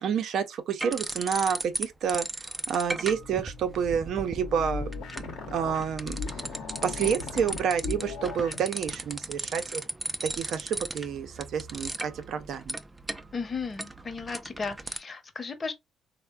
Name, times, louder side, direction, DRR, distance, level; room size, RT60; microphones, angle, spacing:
voice 1, 0.0-4.9 5.5-6.5 6.8-9.8 10.2-12.8, right 7 dB, 70° right, 0.5 m, -29 dB
sound 1, 0.8-1.8 2.1-15.0, right 2 dB, 20° right, 0.4 m, -37 dB
sound 2, 2.9-8.7, left 4 dB, 85° left, 0.8 m, -38 dB
voice 2, 13.3-15.7, left 4 dB, 35° left, 0.8 m, -35 dB
3.3 x 2.1 x 2.2 m
cardioid pair, 90°, 0 cm